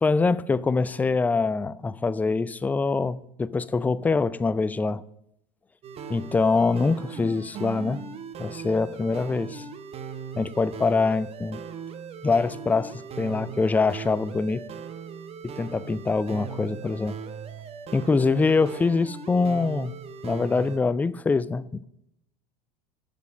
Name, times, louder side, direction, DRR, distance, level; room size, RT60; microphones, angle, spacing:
voice 1, 0.0-5.0 6.1-8.0 8.4-9.6 10.4-11.6 12.2-14.6 15.4-17.2 17.9-19.9 20.2-21.9, left 4 dB, 10° left, 0.3 m, -24 dB
sound 1, 5.8-20.8, right 6 dB, 30° right, 1.0 m, -39 dB
12.5 x 5.3 x 6.5 m
figure-of-eight pair, 85°, 21 cm